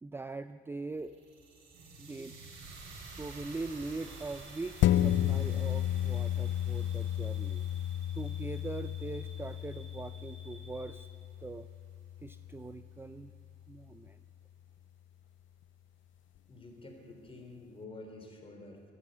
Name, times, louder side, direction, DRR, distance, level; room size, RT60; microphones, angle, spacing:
voice 1, 0.0-1.2 2.0-2.4 3.2-7.7 8.1-11.1 11.4-11.7 12.2-13.3 13.7-14.2, right 3 dB, 10° right, 12 dB, 0.4 m, -42 dB
sound 1, 0.9-11.1, right 3 dB, 75° right, 4.1 m, -52 dB
sound 2, 4.0-11.1, equal, 25° right, 1.7 m, -57 dB
sound 3, 4.8-13.6 14.1-14.2, left 12 dB, 75° left, 0.4 m, -33 dB
voice 2, 16.5-18.9, left 2 dB, 30° left, 2 dB, 3.8 m, -49 dB
15.0 x 10.0 x 7.9 m, 2.6 s
cardioid pair, 90°, 20 cm